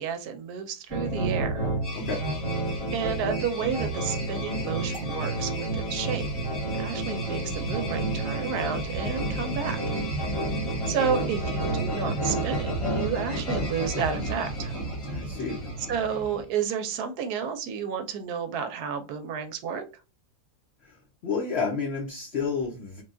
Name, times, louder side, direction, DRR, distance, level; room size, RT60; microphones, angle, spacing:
voice 1, 0.0-1.7 2.9-6.3 6.8-9.8 10.9-14.7 15.9-19.8, right 7 dB, 80° right, 8 dB, 1.1 m, -31 dB
sound 1, 0.9-16.4, right 1 dB, 25° left, 0.8 m, -30 dB
voice 2, 2.0-2.3 15.1-15.7 20.8-23.0, left 5 dB, 55° left, -1 dB, 0.7 m, -31 dB
3.3 x 2.2 x 2.5 m, 0.30 s
omnidirectional pair, 1.7 m